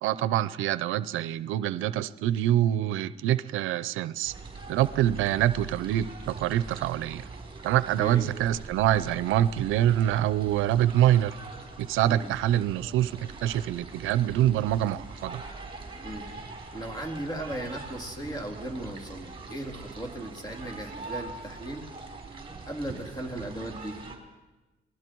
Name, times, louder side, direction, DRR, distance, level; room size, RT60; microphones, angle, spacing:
voice 1, 0.0-4.3 4.7-7.3 7.6-11.4 11.8-15.4, right 12 dB, 90° right, 16 dB, 0.6 m, -25 dB
sound 1, 4.2-24.2, right 3 dB, 25° right, 4.0 m, -43 dB
voice 2, 16.7-21.9 22.7-24.0, right 1 dB, 20° left, 3 dB, 3.5 m, -37 dB
28.5 x 19.5 x 4.6 m, 1.2 s
cardioid pair, 90°, 20 cm